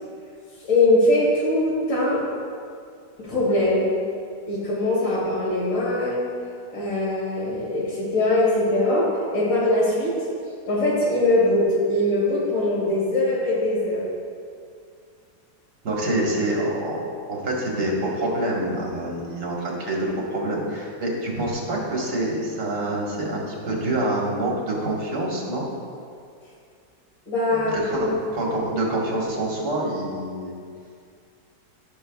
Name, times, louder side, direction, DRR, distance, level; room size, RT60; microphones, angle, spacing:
voice 1, 0.7-2.2 3.2-3.9 4.5-6.2 6.7-9.1 9.3-10.1 10.6-14.0 27.3-28.1 28.5-28.6, left 1 dB, 90° left, -5 dB, 2.9 m, -21 dB
voice 2, 15.8-25.7 27.7-30.6, right 1 dB, 65° right, -3 dB, 2.0 m, -26 dB
14.5 x 6.2 x 2.3 m, 2.3 s
omnidirectional pair, 1.9 m